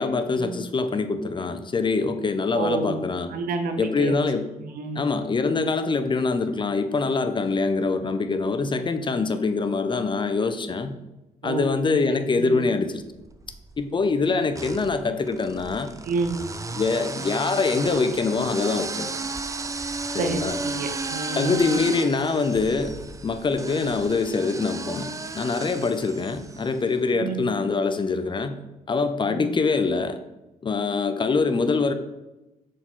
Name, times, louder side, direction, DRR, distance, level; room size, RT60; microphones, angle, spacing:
voice 1, 0.0-3.3 3.8-4.5 5.0-11.0 11.4-13.0 13.8-15.9 16.7-19.1 20.1-20.6 21.4-22.9 23.2-28.6 28.9-30.2 30.6-31.9, left 4 dB, 35° left, 9 dB, 0.6 m, -24 dB
voice 2, 2.5-3.0 3.3-4.2 4.6-5.0 11.4-12.0 12.4-12.6 16.0-16.4 20.2-21.6 27.1-27.7 29.3-29.5, right 3 dB, 80° right, 6 dB, 0.9 m, -29 dB
sound 1, 13.1-13.8 14.5-26.8, right 3 dB, 20° right, 0.5 m, -34 dB
6.3 x 4.7 x 3.8 m, 0.98 s
cardioid pair, 85°, 15 cm